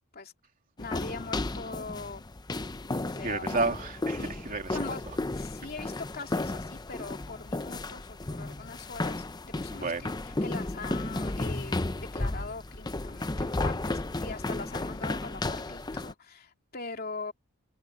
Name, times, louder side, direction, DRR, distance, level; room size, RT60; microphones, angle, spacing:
voice 1, 0.8-2.2 3.1-3.4 4.2-4.3 4.7-10.1 10.4-17.3, left 3 dB, 45° left, 3.0 m, -41 dB
sound 1, 0.8-16.1, left 2 dB, 20° left, 0.6 m, -33 dB
voice 2, 3.2-4.8 5.8-5.9 9.7-10.1, right 3 dB, 40° right, 3.1 m, -31 dB
head